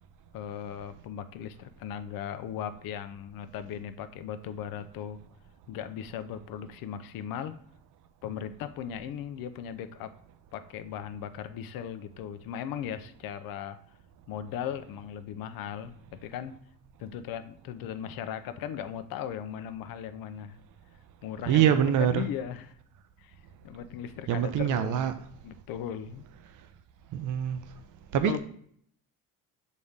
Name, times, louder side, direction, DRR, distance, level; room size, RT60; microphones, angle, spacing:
voice 1, 0.3-5.2 5.7-7.6 8.2-10.1 10.5-13.8 14.3-16.6 17.0-20.6 21.2-22.7 23.2-23.3 23.6-25.1 25.4-26.2 28.1-28.4, left 9 dB, 75° left, 0.7 m, -37 dB
voice 2, 21.5-22.2 24.3-25.1 27.1-27.6 28.1-28.4, right 10 dB, 60° right, 0.6 m, -24 dB
6.5 x 4.2 x 3.5 m
cardioid pair, 85°, 35 cm